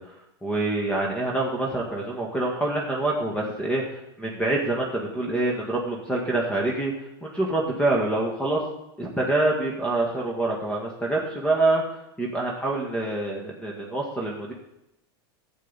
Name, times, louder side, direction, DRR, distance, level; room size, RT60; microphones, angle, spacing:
voice 1, 0.0-6.9 7.2-8.6 9.0-11.8 12.2-14.5, right 2 dB, 10° left, -1 dB, 1.8 m, -26 dB
11.0 x 7.8 x 4.1 m, 0.87 s
hypercardioid pair, 100°, 13 cm